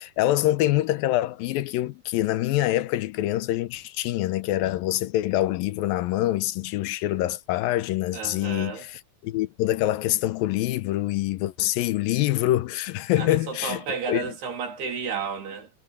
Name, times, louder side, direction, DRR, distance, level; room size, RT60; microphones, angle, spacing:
voice 1, 0.0-13.8 14.1-14.2, left 15 dB, 80° left, 2.3 m, -25 dB
voice 2, 8.1-8.9 13.2-15.7, right 5 dB, 80° right, 5.6 m, -32 dB
omnidirectional pair, 4.6 m